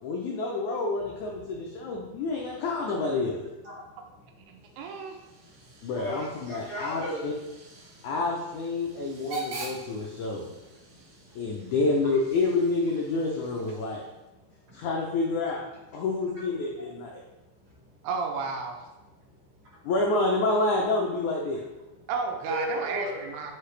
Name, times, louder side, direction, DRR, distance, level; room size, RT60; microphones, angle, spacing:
voice 1, 0.0-3.4 5.8-7.3 8.0-10.5 11.3-14.1 14.7-15.6 15.9-17.1 19.9-21.6, left 3 dB, 80° left, -1 dB, 1.7 m, -28 dB
voice 2, 1.3-2.2 3.6-7.2 7.8-8.1 8.8-9.3 9.6-9.7 10.3-11.7 14.0-14.9 15.5-15.6 17.2-18.1 19.1-19.3 22.5-23.1, equal, 35° right, -8 dB, 3.1 m, -41 dB
voice 3, 4.5-5.2 18.0-18.8 22.1-23.5, right 5 dB, 90° right, 3 dB, 2.9 m, -32 dB
Hiss / Train / Alarm, 4.6-14.2, right 3 dB, 65° right, 2.9 m, -45 dB
8.5 x 5.6 x 3.3 m, 1.0 s
omnidirectional pair, 4.5 m